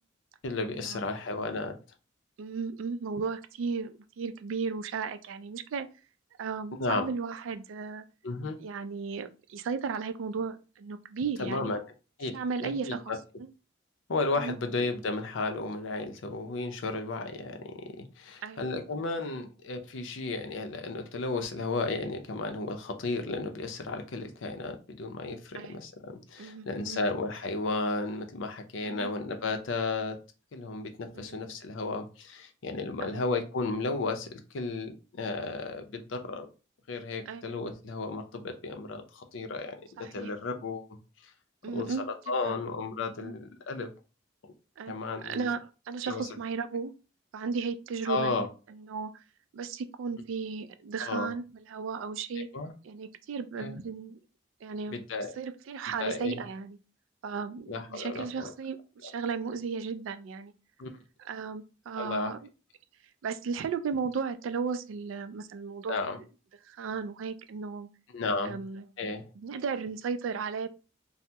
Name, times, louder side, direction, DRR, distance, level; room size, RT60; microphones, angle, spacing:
voice 1, 0.4-1.8 6.8-7.1 8.2-8.6 11.4-11.8 12.2-12.3 12.6-13.2 14.1-30.2 30.5-36.5 36.9-39.8 40.1-41.0 41.2-41.3 41.7-41.9 42.3-43.9 44.4-44.5 44.9-45.5 46.1-46.3 48.1-48.5 51.0-51.3 52.4-52.7 53.6-53.8 54.9-55.3 56.0-56.4 57.7-58.5 60.8-60.9 62.0-62.3 65.9-66.2 68.1-68.6 69.0-69.2, left 3 dB, 80° left, 0.5 m, -33 dB
voice 2, 2.4-5.9 6.4-8.0 8.6-11.7 12.3-13.2 14.4-14.6 18.4-18.6 25.5-25.7 26.4-27.0 28.8-29.1 31.1-31.4 33.0-33.2 37.3-37.4 40.0-40.3 41.6-42.0 42.4-42.6 43.2-43.4 44.8-44.9 45.2-46.9 47.3-49.2 49.5-52.5 52.8-54.2 54.6-55.0 55.4-56.8 57.2-58.8 59.0-60.5 61.2-62.4 63.2-66.1 66.6-67.9 68.4-68.8 69.4-70.7, right 5 dB, 85° right, 0.3 m, -35 dB
2.7 x 2.0 x 3.3 m
head